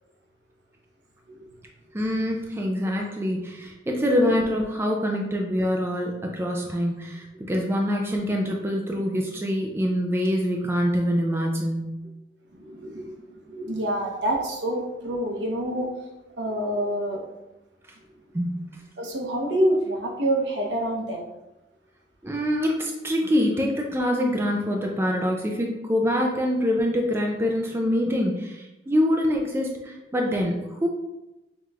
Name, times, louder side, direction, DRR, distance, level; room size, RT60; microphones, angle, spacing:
voice 1, 1.9-12.0 18.3-18.5 22.2-30.9, equal, 15° right, 0 dB, 0.4 m, -25 dB
voice 2, 12.5-15.9 16.4-17.2 19.0-21.3, right 1 dB, 75° right, 0 dB, 0.9 m, -27 dB
5.6 x 3.0 x 2.4 m, 0.98 s
head